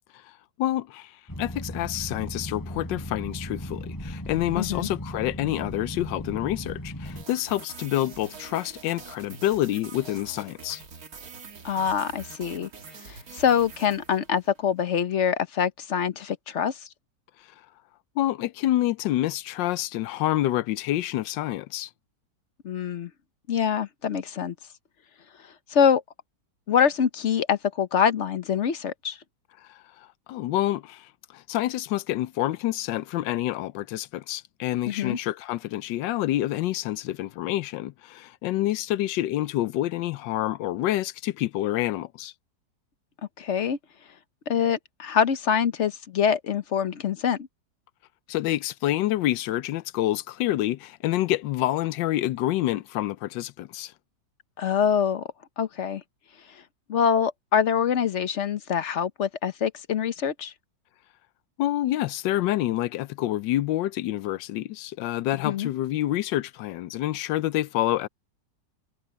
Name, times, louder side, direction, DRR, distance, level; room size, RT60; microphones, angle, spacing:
voice 1, 0.6-1.1 1.4-10.8 18.2-21.9 29.7-29.8 30.3-42.3 48.3-53.9 61.6-68.1, left 14 dB, 85° left, 1.3 m, -27 dB
sound 1, 1.3-7.2, equal, 10° left, 7.2 m, -36 dB
voice 2, 4.6-4.9 11.6-12.7 13.0-16.8 22.6-23.1 23.5-24.5 25.7-26.0 26.7-29.2 34.9-35.2 43.4-43.8 44.5-47.5 54.6-55.3 55.6-56.0 56.9-60.5 65.4-65.7, left 7 dB, 50° left, 1.0 m, -25 dB
sound 2, 7.1-14.6, right 5 dB, 55° right, 2.2 m, -45 dB
omnidirectional pair, 1.9 m